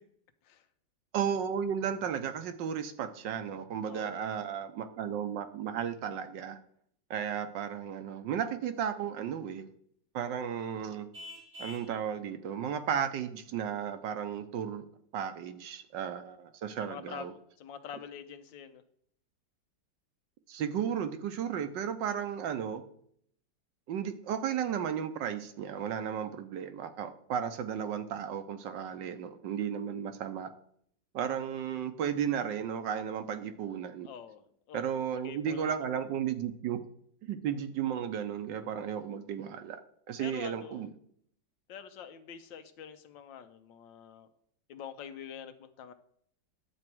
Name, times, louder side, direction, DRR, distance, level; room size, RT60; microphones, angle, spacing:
voice 1, 1.1-6.6 7.1-9.7 10.1-11.1 11.6-14.8 15.1-17.3 20.5-22.8 23.9-30.5 31.1-34.1 34.7-36.8 37.2-39.8 40.1-40.9, right 8 dB, 75° right, 9 dB, 1.4 m, -34 dB
voice 2, 3.8-4.2 16.8-18.8 34.0-35.0 35.2-35.7 40.2-40.9 41.7-44.3 44.7-45.9, left 8 dB, 75° left, 9 dB, 1.5 m, -46 dB
Vehicle horn car horn honking, 11.1-12.0, left 2 dB, 55° right, 1.1 m, -46 dB
11.0 x 7.1 x 4.6 m, 0.66 s
omnidirectional pair, 2.0 m